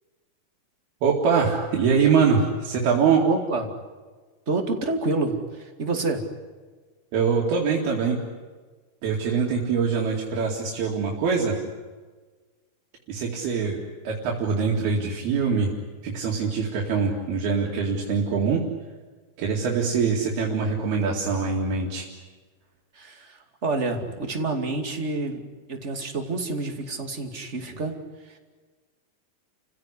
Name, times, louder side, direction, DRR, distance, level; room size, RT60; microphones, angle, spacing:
voice 1, 1.0-3.2 7.1-8.2 9.0-11.6 13.1-13.8 14.0-15.7 16.0-18.6 19.4-22.1, right 5 dB, 75° right, -2 dB, 4.4 m, -23 dB
voice 2, 3.2-3.6 4.5-6.2 22.9-25.4 25.7-28.0 28.3-28.4, right 2 dB, 20° right, 4 dB, 2.1 m, -28 dB
30.0 x 16.5 x 10.0 m, 1.4 s
omnidirectional pair, 4.5 m